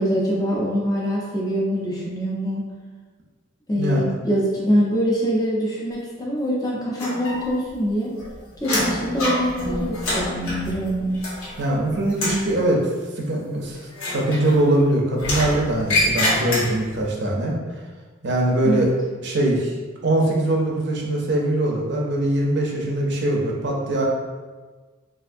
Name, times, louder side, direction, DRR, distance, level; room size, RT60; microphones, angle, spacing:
voice 1, 0.0-2.7 3.7-8.1 8.6-11.3 18.6-18.9, equal, 20° left, -5 dB, 0.4 m, -24 dB
sound 1, 7.0-7.7 8.0-11.8 12.1-12.5 13.9-14.8 15.2-17.0, left 1 dB, 90° left, 0.8 m, -26 dB
voice 2, 11.6-12.8 13.2-13.8 14.1-17.6 18.2-18.9 19.2-19.7 20.0-24.0, right 1 dB, 55° right, -1 dB, 0.5 m, -22 dB
3.3 x 2.4 x 2.5 m, 1.4 s
head